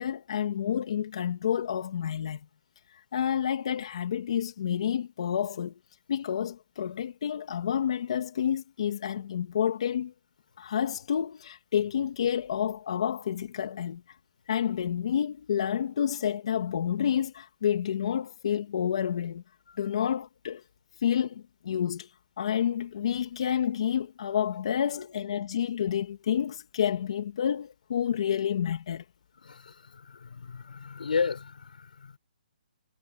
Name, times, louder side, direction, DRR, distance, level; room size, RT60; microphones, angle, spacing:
voice 1, 0.0-2.4 2.9-5.7 6.1-10.1 10.6-14.2 14.5-19.4 19.8-20.6 21.0-29.0, left 9 dB, 40° left, 2.1 m, -29 dB
voice 2, 29.4-32.2, left 5 dB, 65° left, 6.4 m, -34 dB
hypercardioid pair, 175°, 5 cm